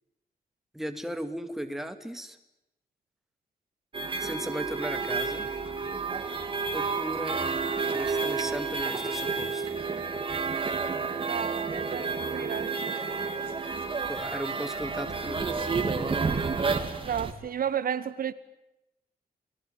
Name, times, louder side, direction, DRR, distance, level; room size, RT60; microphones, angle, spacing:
voice 1, 0.7-2.4 4.2-5.5 6.7-7.4 7.9-9.7 14.1-16.2, equal, ahead, 7 dB, 2.3 m, -36 dB
sound 1, 3.9-17.3, right 4 dB, 35° right, 2.8 m, -30 dB
voice 2, 11.2-13.0 17.0-18.3, right 8 dB, 65° right, 13 dB, 1.2 m, -33 dB
30.0 x 20.0 x 9.4 m, 0.90 s
wide cardioid pair, 160°, 16 cm